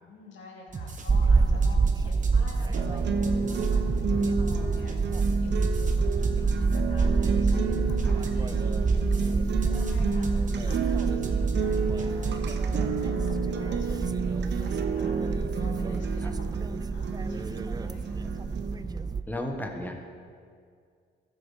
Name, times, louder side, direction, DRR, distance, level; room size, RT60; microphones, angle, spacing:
voice 1, 0.0-7.1 7.4-16.6 16.9-18.2, left 3 dB, 70° left, -2 dB, 2.5 m, -49 dB
sound 1, 0.7-13.0, right 4 dB, 40° right, 1.2 m, -39 dB
sound 2, 1.1-19.2, right 4 dB, 20° right, 0.4 m, -27 dB
sound 3, 2.7-18.7, right 5 dB, 60° right, 0.8 m, -31 dB
voice 2, 19.3-19.9, left 1 dB, 10° left, 2 dB, 1.4 m, -34 dB
14.0 x 7.0 x 4.0 m, 2.2 s
cardioid pair, 90°, 20 cm